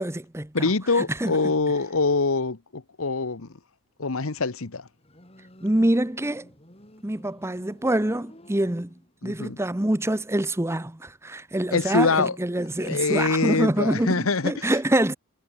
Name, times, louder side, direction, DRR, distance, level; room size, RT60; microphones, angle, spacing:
voice 1, 0.0-0.7 1.0-1.4 5.6-6.5 7.0-8.9 9.2-15.2, right 1 dB, 10° right, 0.8 m, -25 dB
voice 2, 0.5-3.5 4.0-4.9 9.2-9.6 11.7-12.4 12.8-14.7, left 3 dB, 70° left, 1.1 m, -24 dB
Motorcycle, 5.0-9.3, left 1 dB, 25° left, 5.4 m, -51 dB
head